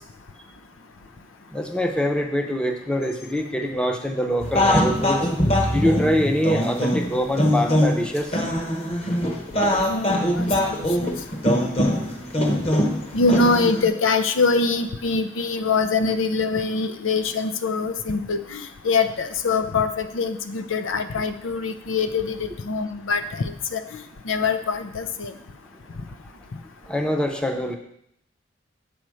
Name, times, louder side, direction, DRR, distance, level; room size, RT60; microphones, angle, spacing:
voice 1, 1.5-5.2 5.7-8.4 26.9-27.8, equal, 5° left, 3 dB, 0.7 m, -24 dB
sound 1, 4.4-13.9, equal, 30° left, 1.1 m, -22 dB
voice 2, 9.8-11.1 13.1-24.0 24.2-25.3, left 4 dB, 85° left, 9 dB, 0.6 m, -24 dB
7.8 x 4.3 x 6.3 m, 0.73 s
head